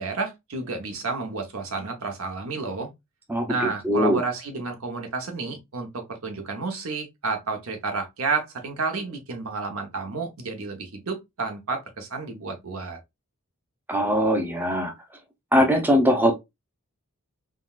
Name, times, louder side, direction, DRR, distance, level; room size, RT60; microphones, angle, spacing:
voice 1, 0.0-2.9 3.5-13.0, right 4 dB, 80° right, 0.9 m, -31 dB
voice 2, 3.3-4.2 13.9-14.9 15.5-16.4, equal, 10° right, 0.5 m, -21 dB
3.7 x 2.3 x 2.3 m
head